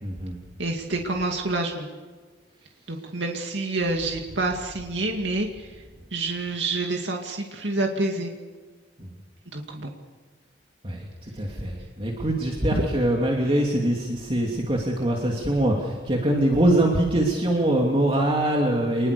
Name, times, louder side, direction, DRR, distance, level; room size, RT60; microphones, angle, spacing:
voice 1, 0.0-0.4 9.0-9.1 10.8-19.1, right 1 dB, 30° right, -1 dB, 2.9 m, -23 dB
voice 2, 0.6-1.9 2.9-5.7 6.1-8.3 9.5-9.9 12.7-12.8, right 2 dB, 80° right, 2 dB, 2.4 m, -27 dB
27.0 x 21.0 x 6.9 m, 1.4 s
head